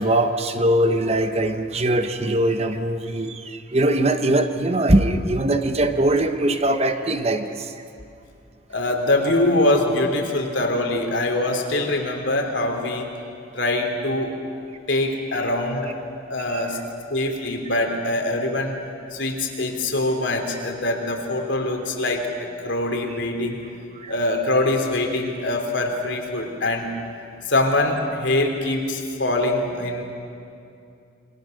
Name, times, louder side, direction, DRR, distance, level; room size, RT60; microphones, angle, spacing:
voice 1, 0.0-7.7 16.5-16.6 24.0-24.1, right 1 dB, 35° right, 8 dB, 1.1 m, -21 dB
voice 2, 8.7-13.1 13.5-14.4 14.9-15.9 16.3-16.8 17.1-18.8 19.1-23.6 24.1-26.9 27.5-30.0, left 2 dB, 70° left, 3 dB, 3.3 m, -23 dB
27.5 x 23.5 x 6.6 m, 2.5 s
head